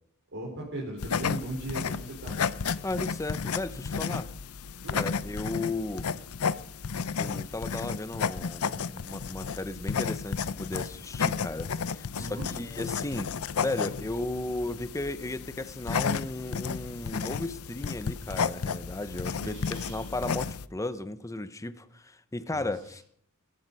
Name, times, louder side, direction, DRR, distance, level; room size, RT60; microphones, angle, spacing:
voice 1, 0.3-2.4 4.8-5.0 12.2-12.5 19.4-20.1 22.5-22.7, right 1 dB, 60° right, 4.1 m, -38 dB
sound 1, 1.0-20.7, left 6 dB, 80° left, 0.6 m, -33 dB
voice 2, 2.8-4.3 4.9-6.1 7.2-13.4 13.6-23.0, left 2 dB, 15° left, 0.7 m, -35 dB
17.0 x 14.0 x 5.4 m
head